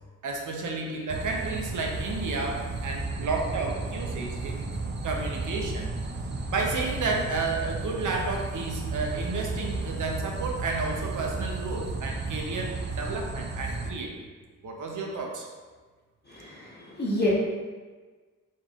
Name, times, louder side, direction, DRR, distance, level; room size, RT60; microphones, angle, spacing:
voice 1, 0.2-4.6 5.0-5.9 6.5-14.3 14.6-15.5, right 3 dB, 65° right, 1 dB, 0.8 m, -31 dB
sound 1, 1.1-13.9, right 3 dB, 35° right, 0.4 m, -33 dB
voice 2, 16.3-17.3, left 1 dB, 30° left, -7 dB, 1.0 m, -29 dB
4.5 x 3.5 x 2.4 m, 1.4 s
cardioid pair, 80°, 33 cm